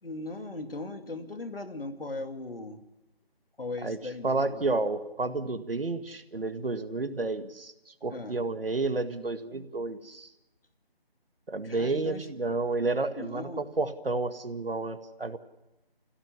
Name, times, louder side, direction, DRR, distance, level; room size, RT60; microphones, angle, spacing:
voice 1, 0.0-2.8 3.6-4.8 8.1-8.4 11.6-12.3 13.2-13.6, left 2 dB, 65° left, 6 dB, 2.5 m, -38 dB
voice 2, 4.2-10.3 11.5-15.4, right 3 dB, 70° right, 9 dB, 1.9 m, -31 dB
27.5 x 16.5 x 7.0 m, 0.98 s
figure-of-eight pair, 175°, 30 cm